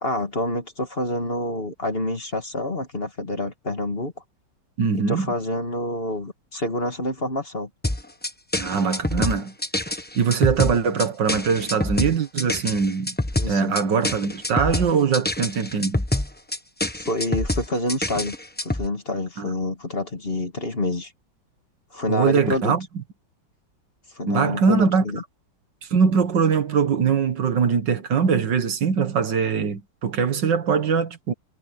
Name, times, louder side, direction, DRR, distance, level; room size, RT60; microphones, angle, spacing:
voice 1, 0.0-4.1 4.9-7.7 13.4-13.7 17.0-18.3 18.6-21.1 21.9-22.7 24.1-25.2, left 1 dB, 30° left, 2.2 m, -27 dB
voice 2, 4.8-5.3 8.6-9.5 10.2-13.2 13.5-16.0 19.4-19.5 22.1-22.9 24.3-25.0 25.9-31.3, right 6 dB, 65° right, 2.1 m, -22 dB
sound 1, 7.8-18.9, left 1 dB, 10° left, 0.7 m, -26 dB
omnidirectional pair, 2.1 m